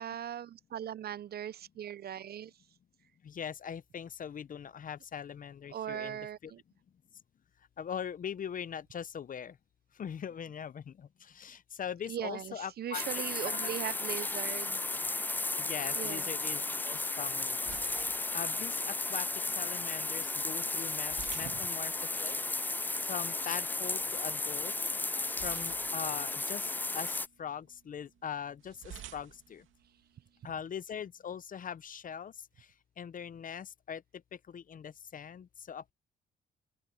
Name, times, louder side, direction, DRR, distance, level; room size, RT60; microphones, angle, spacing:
voice 1, 0.0-2.5 5.7-6.6 12.1-14.8 16.0-16.5 21.4-21.6 22.3-22.9, right 10 dB, 50° right, 0.6 m, -40 dB
voice 2, 3.2-6.5 7.8-9.6 10.0-13.0 13.4-13.9 15.6-17.8 18.3-21.9 22.2-22.4 23.0-24.7 25.4-29.6 30.4-32.3 33.0-34.0 34.5-35.9, left 8 dB, 45° left, 0.7 m, -41 dB
sound 1, 12.9-27.3, left 2 dB, 10° left, 0.3 m, -34 dB
sound 2, 16.6-30.5, right 12 dB, 80° right, 2.5 m, -55 dB
open air
cardioid pair, 90°, 20 cm